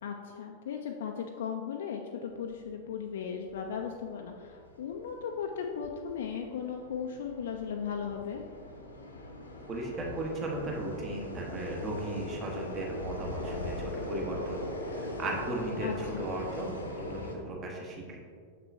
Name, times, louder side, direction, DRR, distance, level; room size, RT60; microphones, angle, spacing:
voice 1, 0.0-8.4 15.8-16.3, left 7 dB, 60° left, 3 dB, 0.4 m, -37 dB
sound 1, 2.3-17.3, left 1 dB, 75° left, 0.8 m, -41 dB
voice 2, 9.7-14.6 14.9-18.2, right 2 dB, 30° right, -1 dB, 1.2 m, -36 dB
6.7 x 6.1 x 2.7 m, 2.1 s
figure-of-eight pair, 90°, 0 cm